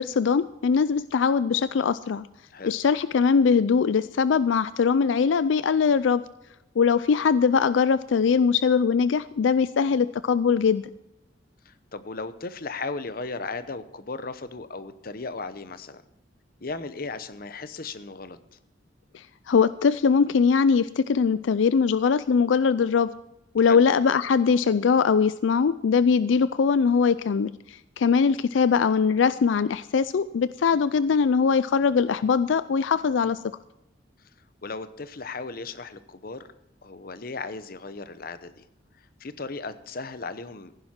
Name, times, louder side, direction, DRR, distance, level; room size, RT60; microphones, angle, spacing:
voice 1, 0.0-2.3 2.6-6.2 6.8-10.8 19.1-23.1 23.5-33.4, left 6 dB, 80° left, 16 dB, 0.4 m, -21 dB
voice 2, 11.6-16.0 16.6-18.4 23.6-23.8 34.6-36.5 36.8-38.6 39.0-40.8, left 3 dB, 50° left, 13 dB, 0.8 m, -36 dB
15.5 x 10.5 x 4.4 m, 0.90 s
head